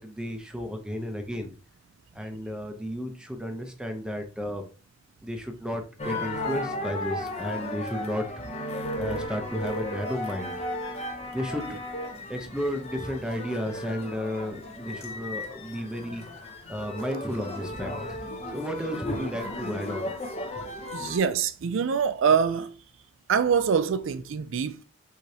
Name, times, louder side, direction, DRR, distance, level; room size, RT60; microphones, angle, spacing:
voice 1, 0.0-1.5 2.1-4.6 5.2-8.7 8.9-10.6 11.3-11.8 12.3-16.2 16.7-18.2 18.5-20.1, equal, 5° right, 0.7 m, -33 dB
sound 1, 6.0-21.2, left 1 dB, 30° left, 0.7 m, -35 dB
voice 2, 20.9-22.7 23.3-24.8, right 6 dB, 60° right, 0.4 m, -24 dB
4.8 x 3.9 x 2.8 m
head